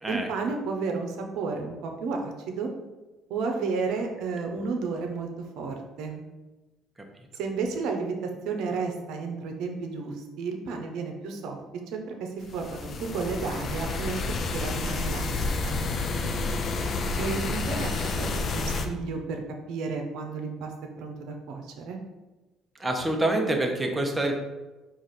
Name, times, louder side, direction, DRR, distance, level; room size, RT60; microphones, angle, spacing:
voice 1, 0.1-2.7 3.3-6.2 7.3-11.6 11.9-15.3 15.6-15.8 17.2-19.4 19.7-20.7 21.0-22.0, right 4 dB, 75° right, 3 dB, 0.7 m, -32 dB
sound 1, 12.4-18.9, left 3 dB, 45° left, 0.5 m, -30 dB
voice 2, 16.8-17.4 22.8-24.3, right 1 dB, 15° right, 2 dB, 0.8 m, -27 dB
4.8 x 2.5 x 4.2 m, 1.1 s
supercardioid pair, 85°, 0 cm